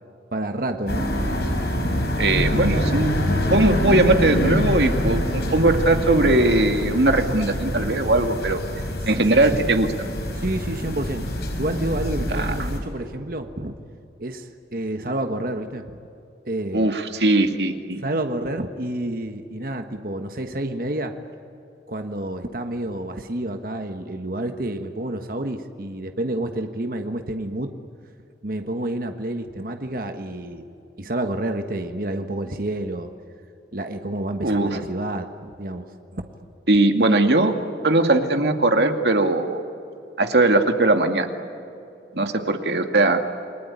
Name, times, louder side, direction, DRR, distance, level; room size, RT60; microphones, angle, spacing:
voice 1, 0.3-1.1 9.1-9.7 10.3-11.2 11.6-13.8 14.2-16.0 16.5-16.9 18.0-21.1 21.9-27.7 28.4-30.7 30.9-33.1 33.7-35.9 36.1-36.2, right 1 dB, 55° right, 6 dB, 1.4 m, -29 dB
sound 1, 0.9-12.8, equal, 65° left, 5.3 m, -25 dB
voice 2, 2.2-3.1 3.5-8.6 9.1-9.9 12.4-12.5 16.7-18.0 34.4-34.8 36.7-37.5 37.8-39.6 40.2-41.3 42.1-43.2, right 2 dB, 70° right, 5 dB, 2.2 m, -19 dB
29.0 x 21.0 x 9.8 m, 2.7 s
head